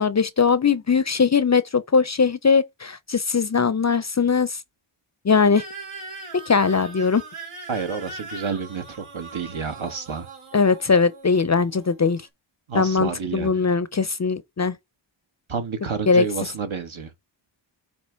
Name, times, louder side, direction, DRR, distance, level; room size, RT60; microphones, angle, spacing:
voice 1, 0.0-4.6 5.2-5.6 6.3-7.2 10.5-12.2 12.7-14.8 16.1-16.2, left 5 dB, 35° left, 0.5 m, -20 dB
sound 1, 5.5-12.3, right 3 dB, 85° right, 2.4 m, -40 dB
voice 2, 7.7-10.3 12.7-13.6 15.5-17.1, right 5 dB, 70° right, 1.5 m, -29 dB
8.7 x 2.9 x 4.5 m
wide cardioid pair, 85°, 49 cm